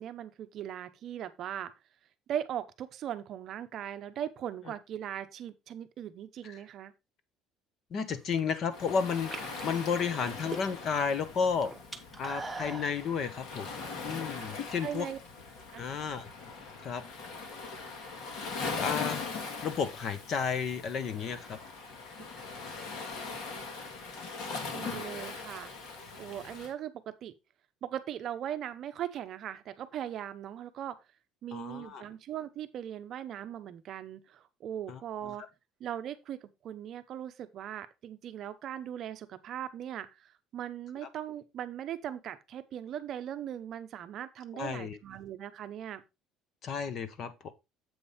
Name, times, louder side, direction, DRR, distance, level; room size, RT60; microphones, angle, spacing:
voice 1, 0.0-1.7 2.3-6.9 14.8-15.2 15.7-15.8 22.2-22.3 24.7-27.3 27.8-31.0 31.4-35.5 35.8-46.0, right 10 dB, 40° right, 0.7 m, -39 dB
voice 2, 7.9-11.7 12.2-13.7 14.0-15.1 15.8-16.3 16.8-17.0 18.8-19.3 19.6-21.6 31.5-32.0 34.9-35.0 41.0-41.1 44.5-45.0 46.6-47.5, left 6 dB, 35° left, 1.0 m, -32 dB
sound 1, 8.1-8.6 9.2-11.0 11.3-13.0, right 2 dB, 5° right, 0.8 m, -41 dB
Waves surf, 8.7-26.7, left 4 dB, 55° left, 2.3 m, -40 dB
7.9 x 5.3 x 4.1 m
cardioid pair, 180°, 0 cm